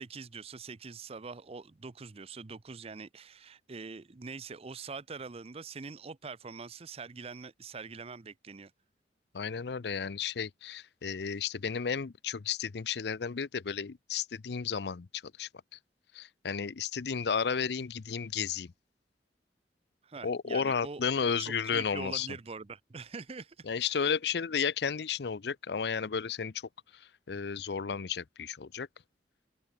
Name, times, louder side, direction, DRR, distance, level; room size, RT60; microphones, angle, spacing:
voice 1, 0.0-8.7 20.0-24.1, right 4 dB, 35° right, 0.6 m, -44 dB
voice 2, 9.3-15.8 16.1-18.7 20.2-22.3 23.7-26.5 27.3-28.9, left 6 dB, 65° left, 0.6 m, -33 dB
open air
head